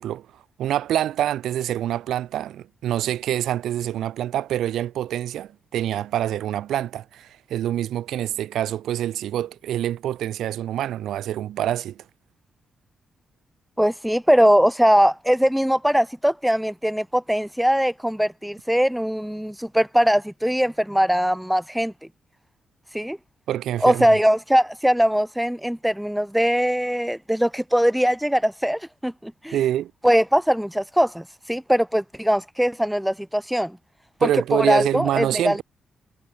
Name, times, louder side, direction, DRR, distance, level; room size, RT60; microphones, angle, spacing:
voice 1, 0.0-12.0 23.5-24.2 29.5-29.9 34.2-35.6, right 12 dB, 85° right, 5.3 m, -26 dB
voice 2, 13.8-21.9 22.9-23.2 23.8-29.6 30.0-33.8 34.2-35.6, equal, 5° right, 0.9 m, -21 dB
cardioid pair, 75°, 0 cm